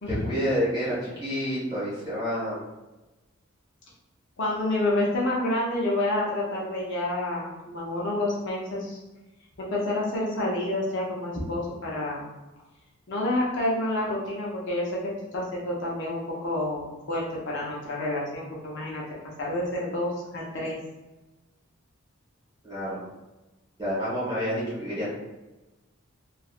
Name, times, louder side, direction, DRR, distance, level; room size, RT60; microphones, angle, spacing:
voice 1, 0.1-2.6 22.6-23.0 23.8-25.2, equal, 20° right, -10 dB, 1.4 m, -29 dB
voice 2, 4.4-9.0 9.6-12.3 13.1-14.9 15.3-19.0 19.4-20.8, left 1 dB, 55° left, -5 dB, 0.7 m, -28 dB
3.0 x 2.4 x 2.4 m, 1.1 s
head